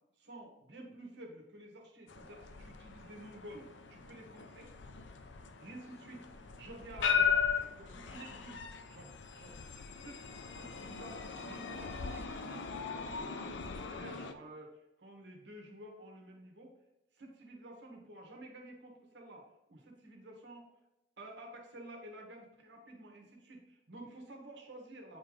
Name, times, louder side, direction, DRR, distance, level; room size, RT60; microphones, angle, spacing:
voice 1, 0.2-4.7 5.6-8.6 8.9-9.6 10.0-16.7 17.2-20.7 21.2-25.2, right 1 dB, 80° right, 1 dB, 1.5 m, -51 dB
sound 1, 2.1-14.3, left 6 dB, 90° left, 0.6 m, -38 dB
8.3 x 3.8 x 3.2 m, 0.92 s
head